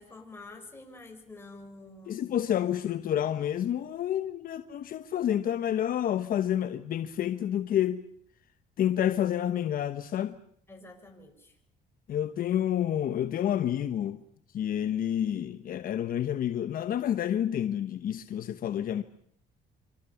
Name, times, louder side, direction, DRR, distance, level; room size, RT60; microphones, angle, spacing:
voice 1, 0.0-2.3 10.7-11.6, left 2 dB, 15° left, 7.0 m, -48 dB
voice 2, 2.1-8.0 8.8-10.4 12.1-14.2 14.5-19.0, left 10 dB, 55° left, 1.2 m, -29 dB
25.5 x 25.5 x 7.2 m
cardioid pair, 110°, 17 cm